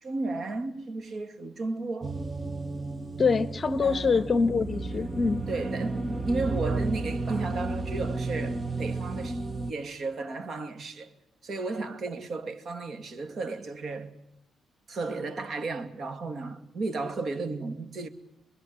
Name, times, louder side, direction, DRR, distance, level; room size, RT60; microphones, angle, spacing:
voice 1, 0.0-2.2 3.8-4.3 5.5-11.1 11.4-14.1 14.9-18.1, right 3 dB, 50° right, 2.4 m, -34 dB
sound 1, 2.0-9.7, right 3 dB, 20° right, 1.0 m, -32 dB
voice 2, 3.2-5.4, left 4 dB, 35° left, 1.1 m, -25 dB
26.5 x 22.0 x 7.7 m
cardioid pair, 115°, 0 cm